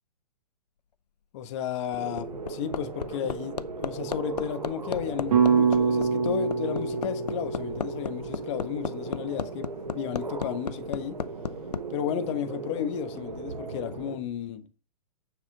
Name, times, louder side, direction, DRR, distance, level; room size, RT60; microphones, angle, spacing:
voice 1, 1.3-11.2 11.9-14.7, left 9 dB, 45° left, 1.3 m, -33 dB
Hammer, 1.9-11.8 13.2-13.3, left 6 dB, 90° left, 0.6 m, -33 dB
sound 1, 2.0-14.2, right 3 dB, 90° right, 1.5 m, -38 dB
sound 2, 5.3-9.6, right 5 dB, 70° right, 2.5 m, -26 dB
9.2 x 7.3 x 3.8 m
hypercardioid pair, 115°, 20 cm